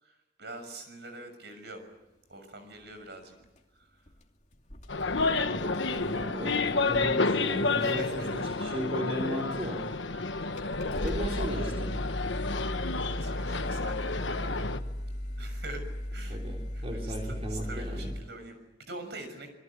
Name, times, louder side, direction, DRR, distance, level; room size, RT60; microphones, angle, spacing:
voice 1, 0.0-1.8 2.3-3.3 3.8-4.0 7.8-8.4 9.6-10.5 11.2-11.4 12.4-14.7 15.4-15.8 16.1-16.4 16.7-19.5, right 2 dB, 65° right, 8 dB, 6.4 m, -45 dB
sound 1, 3.4-3.6 4.1-4.2 4.5-7.3 7.8-8.2 9.1-9.2 10.0-10.1 10.6-18.2, equal, 40° left, 2.5 m, -37 dB
sound 2, 4.9-14.8, left 3 dB, 75° left, 1.3 m, -30 dB
voice 2, 5.5-8.3 8.6-9.8 11.0-12.0 16.3-18.1, right 1 dB, 35° right, 0 dB, 3.8 m, -36 dB
27.0 x 22.5 x 8.8 m, 1.0 s
head